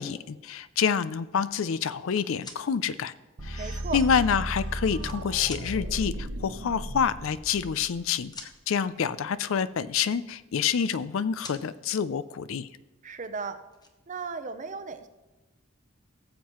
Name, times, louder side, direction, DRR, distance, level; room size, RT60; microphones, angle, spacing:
voice 1, 0.0-3.1 3.4-3.7 3.9-12.7, left 7 dB, 65° left, 16 dB, 0.4 m, -27 dB
sound 1, 2.0-2.6 3.6-3.7 4.5-5.2 5.4-5.7 6.8-6.9 7.1-7.3 7.7-8.5 10.4-11.1 11.4-11.6 13.1-13.2 13.5-13.9, left 3 dB, 20° left, 0.8 m, -45 dB
sound 2, 3.4-8.3, right 1 dB, 75° right, 1.1 m, -35 dB
voice 2, 3.6-4.0 13.0-13.6 14.1-15.1, right 4 dB, 35° right, 10 dB, 0.6 m, -35 dB
17.5 x 7.3 x 3.0 m, 1.1 s
head